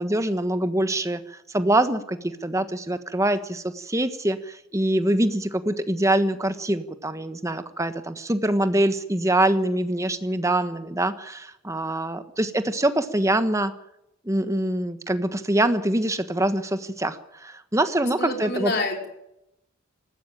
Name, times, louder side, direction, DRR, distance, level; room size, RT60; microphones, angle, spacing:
voice 1, 0.0-13.7 14.2-18.7, right 1 dB, 15° right, 10 dB, 1.3 m, -24 dB
voice 2, 18.2-19.1, left 2 dB, 50° left, 3 dB, 4.5 m, -27 dB
19.5 x 15.0 x 8.9 m, 0.85 s
head